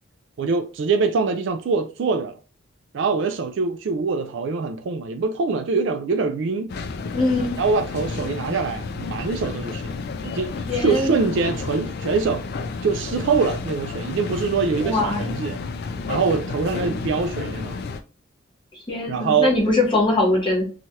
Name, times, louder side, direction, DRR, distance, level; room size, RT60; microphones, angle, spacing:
voice 1, 0.4-2.4 2.9-6.7 7.6-10.0 10.2-12.4 12.8-15.6 16.1-17.8 19.1-19.5, right 4 dB, 60° right, 0.3 m, -24 dB
sound 1, 6.7-18.0, left 4 dB, 50° left, 0.3 m, -31 dB
voice 2, 7.1-7.6 10.7-11.2 14.8-15.2 18.9-20.7, left 2 dB, 25° left, 1.0 m, -21 dB
3.1 x 2.3 x 2.7 m
head